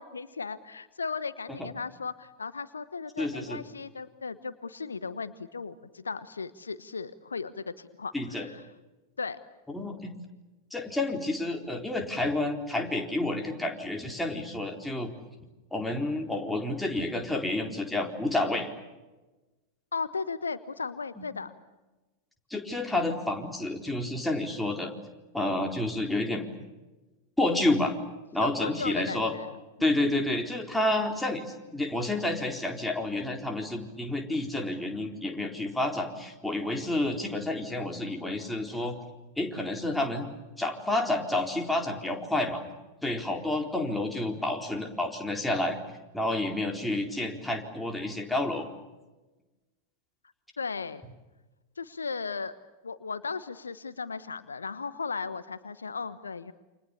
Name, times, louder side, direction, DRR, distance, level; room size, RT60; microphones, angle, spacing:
voice 1, 0.0-8.6 9.2-9.4 19.9-21.5 28.4-29.5 29.8-30.0 50.6-51.0 51.8-52.5 52.8-56.5, left 5 dB, 75° left, 14 dB, 1.1 m, -36 dB
voice 2, 3.2-3.6 8.1-8.5 9.7-10.1 10.7-15.1 15.7-18.7 21.2-21.3 22.5-24.9 25.3-26.4 27.4-27.9 28.3-29.3 29.8-39.0 39.4-40.3 40.6-42.6 43.0-45.8 46.1-48.7, left 2 dB, 5° left, 2 dB, 4.2 m, -29 dB
29.0 x 27.0 x 7.0 m, 1.1 s
figure-of-eight pair, 90°, 0 cm